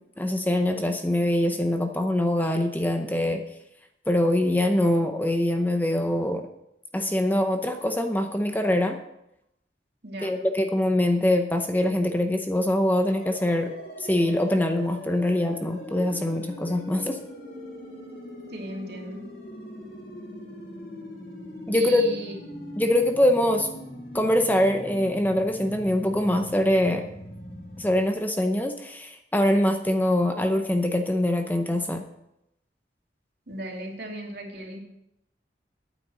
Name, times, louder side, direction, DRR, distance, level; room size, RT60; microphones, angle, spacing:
voice 1, 0.2-3.4 4.1-6.5 6.9-9.0 10.2-13.7 14.0-17.2 21.7-22.0 22.8-23.7 24.1-27.0 27.8-32.0, left 1 dB, 10° left, 5 dB, 0.7 m, -23 dB
voice 2, 10.0-10.4 18.5-19.3 21.7-22.3 33.5-34.8, right 1 dB, 60° right, 0 dB, 2.5 m, -36 dB
sound 1, 13.1-28.0, left 1 dB, 55° left, 2.4 m, -41 dB
9.5 x 9.0 x 6.3 m, 0.82 s
head